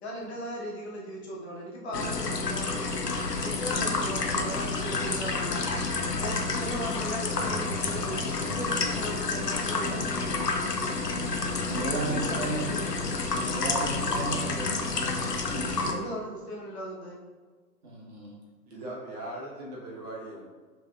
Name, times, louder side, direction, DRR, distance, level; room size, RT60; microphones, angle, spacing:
voice 1, 0.0-2.9 3.4-5.6 6.2-10.5 11.9-13.0 15.9-17.2, equal, 45° left, -3 dB, 1.1 m, -38 dB
sound 1, 1.9-15.9, left 3 dB, 90° left, 0.7 m, -29 dB
voice 2, 11.1-12.6 13.5-14.8 17.8-18.4, right 2 dB, 70° right, -3 dB, 1.5 m, -35 dB
voice 3, 18.7-20.5, right 1 dB, 25° right, -5 dB, 1.2 m, -39 dB
5.1 x 3.4 x 2.3 m, 1.4 s
figure-of-eight pair, 120°, 47 cm